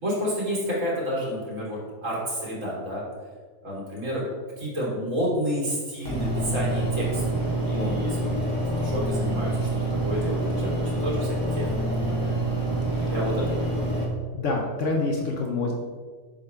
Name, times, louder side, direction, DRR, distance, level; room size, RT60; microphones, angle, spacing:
voice 1, 0.0-3.0 3.6-4.2 4.6-7.2 7.7-12.4 13.1-13.8, equal, 65° right, -5 dB, 2.7 m, -30 dB
sound 1, 6.1-14.1, right 1 dB, 15° left, 1.4 m, -27 dB
voice 2, 14.3-15.7, left 3 dB, 65° left, 1 dB, 1.1 m, -27 dB
7.3 x 5.3 x 3.5 m, 1.5 s
omnidirectional pair, 1.4 m